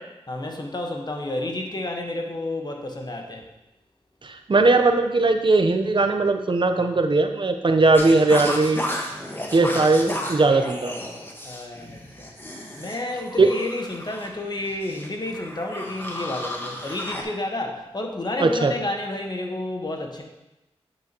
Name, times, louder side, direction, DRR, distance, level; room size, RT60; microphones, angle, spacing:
voice 1, 0.3-3.4 11.4-12.3 12.8-20.2, left 2 dB, 40° left, 2 dB, 1.2 m, -30 dB
voice 2, 4.2-8.8 9.5-10.9 13.4-13.5 18.4-18.7, right 3 dB, 45° right, 6 dB, 0.8 m, -19 dB
sound 1, 7.9-17.2, left 1 dB, 20° left, 1.4 m, -33 dB
8.6 x 6.2 x 2.9 m, 0.95 s
cardioid pair, 40°, 11 cm